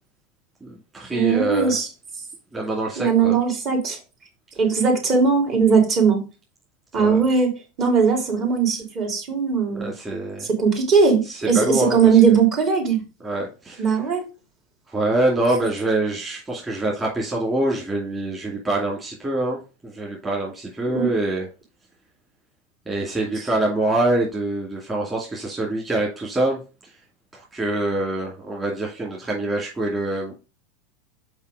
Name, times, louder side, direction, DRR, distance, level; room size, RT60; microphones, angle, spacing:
voice 1, 0.6-1.8 2.5-3.4 7.0-7.2 9.7-10.5 11.2-12.4 13.2-14.0 14.9-21.5 22.9-26.6 27.3-30.3, right 2 dB, 15° right, -3 dB, 2.6 m, -25 dB
voice 2, 1.1-1.9 3.0-4.0 4.6-6.2 6.9-7.5 7.8-9.9 10.4-13.0 13.8-14.2 20.9-21.1, right 5 dB, 40° right, 1 dB, 3.4 m, -19 dB
5.6 x 5.0 x 5.0 m, 0.31 s
supercardioid pair, 115°, 0 cm